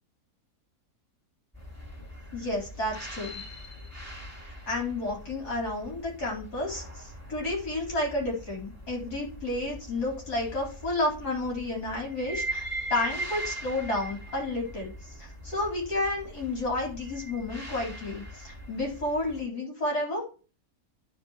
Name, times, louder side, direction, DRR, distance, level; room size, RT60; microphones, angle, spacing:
sound 1, 1.5-19.4, right 1 dB, 10° left, 2.0 m, -41 dB
voice 1, 2.3-3.4 4.4-14.9 15.2-20.2, left 2 dB, 80° left, -2 dB, 4.1 m, -31 dB
13.5 x 4.7 x 2.9 m, 0.36 s
omnidirectional pair, 1.7 m